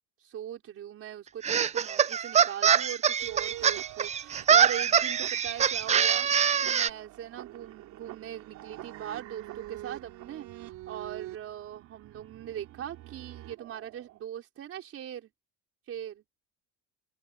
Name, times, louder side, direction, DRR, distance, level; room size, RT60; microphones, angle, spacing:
voice 1, 0.2-15.3 15.9-16.2, right 10 dB, 45° right, 4.6 m, -41 dB
sound 1, 1.4-6.9, right 8 dB, 20° right, 0.5 m, -24 dB
sound 2, 3.2-14.2, right 15 dB, 65° right, 3.9 m, -45 dB
open air
cardioid pair, 120°, 31 cm